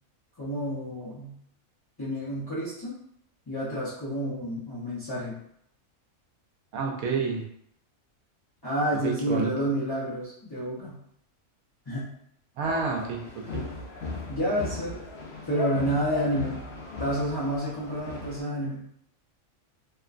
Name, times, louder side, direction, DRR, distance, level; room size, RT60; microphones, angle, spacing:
voice 1, 0.4-1.3 2.0-3.0 3.5-5.4 8.6-11.0 11.9-12.1 14.3-15.0 15.4-16.6 17.0-18.9, equal, 25° left, -11 dB, 0.6 m, -29 dB
voice 2, 6.7-7.4 9.0-9.7 12.6-13.6, right 4 dB, 90° right, 0 dB, 1.1 m, -29 dB
sound 1, 12.6-18.4, left 2 dB, 60° left, 0.8 m, -37 dB
2.9 x 2.1 x 2.4 m, 0.73 s
omnidirectional pair, 1.4 m